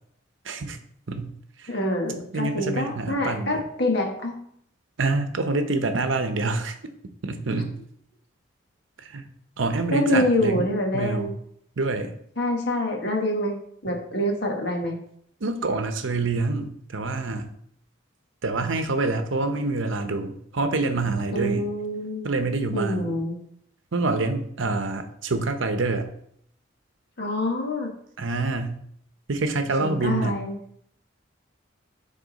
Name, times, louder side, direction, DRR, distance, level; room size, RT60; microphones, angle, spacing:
voice 1, 0.4-0.8 1.1-1.3 1.6-1.7 2.3-3.6 5.0-6.7 7.2-7.8 9.0-9.2 9.6-10.6 10.9-11.4 11.8-12.1 15.4-17.5 18.4-21.7 22.2-23.1 23.9-26.1 28.2-28.8 29.3-30.4, right 3 dB, 75° right, 8 dB, 0.8 m, -26 dB
voice 2, 1.7-4.3 9.9-11.3 12.4-13.6 13.8-15.0 21.3-22.3 22.7-23.4 27.2-27.9 29.8-30.6, left 1 dB, 55° left, 1 dB, 1.5 m, -26 dB
10.0 x 3.8 x 4.0 m, 0.68 s
head